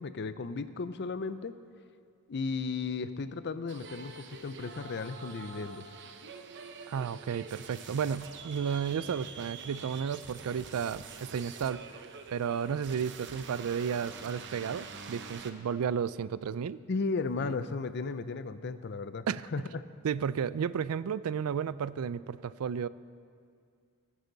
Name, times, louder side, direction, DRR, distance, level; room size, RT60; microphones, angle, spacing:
voice 1, 0.0-1.5 2.3-5.9 16.9-19.3 19.5-19.8, left 4 dB, 50° left, 12 dB, 0.5 m, -35 dB
sound 1, 3.7-15.5, right 5 dB, 55° right, 0.8 m, -46 dB
voice 2, 6.9-12.0 12.3-16.8 17.4-17.6 19.3-19.5 20.0-22.9, right 7 dB, 70° right, 17 dB, 0.4 m, -33 dB
21.5 x 9.8 x 4.0 m, 2.2 s
head